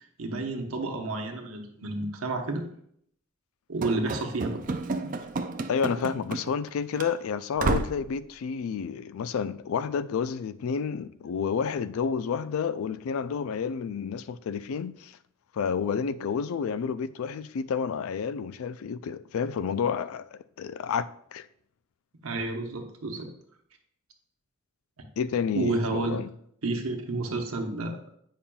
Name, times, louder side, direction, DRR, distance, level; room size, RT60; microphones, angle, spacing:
voice 1, 0.2-2.7 3.7-4.6 4.9-5.1 22.2-23.3 25.0-25.1 25.5-26.2 26.6-28.0, right 2 dB, 85° right, 0.9 m, -30 dB
Run / Slam, 3.8-6.7 7.0-7.1 7.6-8.1, right 3 dB, 40° right, 0.3 m, -31 dB
voice 2, 5.7-15.2 15.5-21.5 25.2-26.3, left 6 dB, 80° left, 0.3 m, -30 dB
8.5 x 5.5 x 2.3 m
head